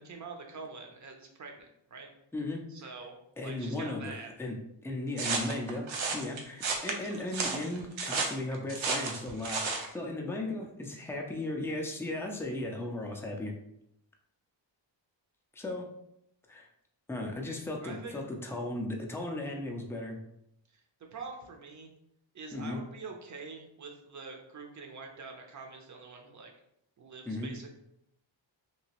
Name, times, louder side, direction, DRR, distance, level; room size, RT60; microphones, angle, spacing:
voice 1, 0.0-2.1 2.7-4.3 17.8-18.1 20.7-20.8 21.1-21.9 22.3-26.5 27.0-27.7, right 4 dB, 40° right, 2 dB, 0.6 m, -45 dB
voice 2, 3.4-4.1 4.4-4.5 4.8-5.9 6.1-13.5 15.5-15.8 16.5-16.7 17.1-20.2 22.5-22.8 27.3-27.5, left 2 dB, 5° left, 0 dB, 0.4 m, -36 dB
sound 1, 5.2-9.9, right 4 dB, 80° right, 0.7 m, -33 dB
3.0 x 2.8 x 2.9 m, 0.77 s
wide cardioid pair, 130°, 46 cm